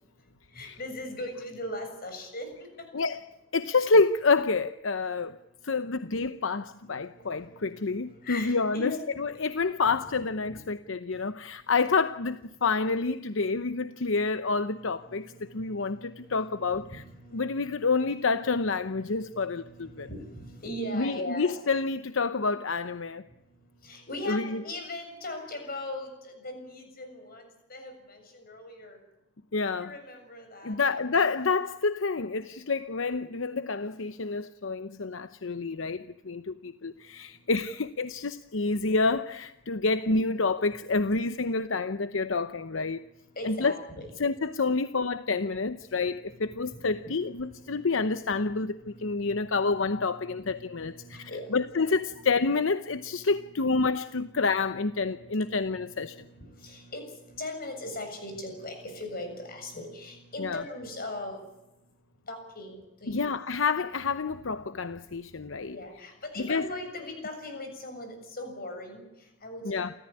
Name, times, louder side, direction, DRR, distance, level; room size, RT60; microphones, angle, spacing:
voice 1, 0.5-2.9 7.0-9.0 9.3-9.5 10.5-10.6 14.1-14.2 14.5-17.8 18.0-18.1 18.9-21.6 23.8-29.0 29.8-30.8 43.0-43.1 43.3-44.1 46.0-48.1 48.4-51.6 52.1-52.2 52.9-53.7 54.1-54.5 55.1-61.4 62.3-63.2 65.7-69.8, left 1 dB, 50° left, 7.2 m, -41 dB
voice 2, 3.5-5.4 5.6-8.9 9.2-17.0 17.3-20.1 20.9-23.2 24.2-24.6 29.5-29.9 30.6-43.0 43.4-43.7 44.2-56.2 60.4-60.6 63.1-65.8 66.4-66.7 69.6-69.9, left 4 dB, 80° left, 0.8 m, -28 dB
29.5 x 14.0 x 9.8 m
head